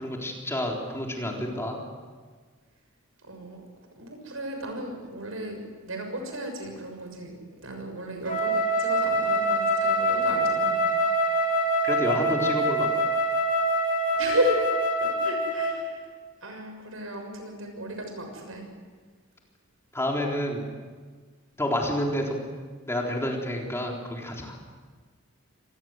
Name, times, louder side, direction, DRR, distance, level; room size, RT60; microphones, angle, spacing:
voice 1, 0.0-1.8 11.8-13.0 19.9-20.6 21.6-22.4 22.9-24.6, left 1 dB, 15° left, 0 dB, 3.8 m, -29 dB
voice 2, 3.2-3.7 3.9-5.6 5.8-10.9 14.1-14.6 15.0-16.1 16.4-18.7, equal, 80° right, 4 dB, 6.6 m, -34 dB
Wind instrument woodwind instrument, 8.3-15.9, right 1 dB, 40° left, 2.9 m, -25 dB
25.5 x 20.0 x 7.9 m, 1.5 s
head